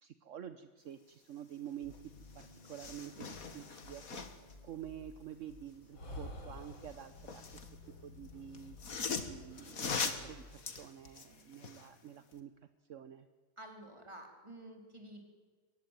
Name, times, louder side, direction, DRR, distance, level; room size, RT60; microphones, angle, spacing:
voice 1, 0.0-4.0 4.6-7.6 8.0-8.8 9.2-12.5 12.9-13.3, right 10 dB, 55° right, 11 dB, 0.9 m, -48 dB
sound 1, 1.6-10.6, left 2 dB, 75° left, 7.8 m, -56 dB
sound 2, 1.9-2.0 2.3-4.5 6.7-7.7 8.5-11.9 12.3-12.4, left 5 dB, 45° left, 2.1 m, -41 dB
sound 3, 2.1-9.7, left 1 dB, 90° left, 4.0 m, -54 dB
voice 2, 13.6-15.2, right 1 dB, 15° right, 3 dB, 4.1 m, -50 dB
23.5 x 18.0 x 9.2 m, 1.5 s
omnidirectional pair, 2.1 m